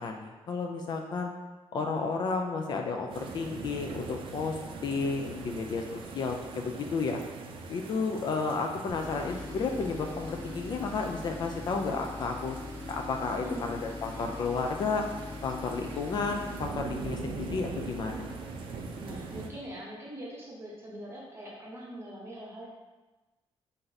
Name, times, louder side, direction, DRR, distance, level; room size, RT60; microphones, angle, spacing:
voice 1, 0.0-1.3 1.7-4.6 4.8-7.2 7.7-12.6 12.9-15.1 15.4-18.3, left 4 dB, 45° left, 3 dB, 0.3 m, -32 dB
sound 1, 3.1-19.5, right 4 dB, 55° right, 0.4 m, -42 dB
Tools, 8.9-18.4, left 2 dB, 20° left, 0.8 m, -42 dB
voice 2, 13.4-13.7 19.0-22.7, equal, 25° right, -3 dB, 0.9 m, -42 dB
4.4 x 2.6 x 3.9 m, 1.2 s
wide cardioid pair, 175°, 10 cm